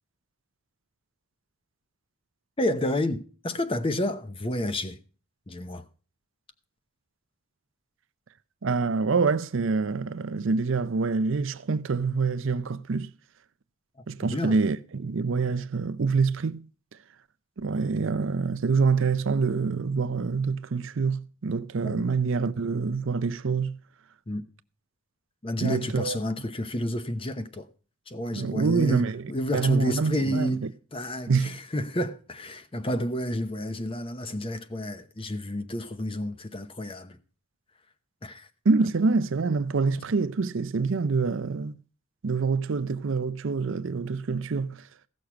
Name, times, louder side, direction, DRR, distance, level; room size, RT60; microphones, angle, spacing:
voice 1, 2.6-5.0 5.5-5.8 14.2-14.6 21.8-22.0 24.3-24.5 25.4-27.7 28.1-37.2 38.2-38.5, left 1 dB, 25° left, 0.8 m, -30 dB
voice 2, 8.6-13.1 14.1-16.7 17.6-23.8 25.6-26.2 28.3-29.2 29.5-30.5 31.3-31.5 38.6-41.8 42.2-44.8, right 4 dB, 60° right, 0.5 m, -26 dB
15.5 x 6.5 x 5.8 m
head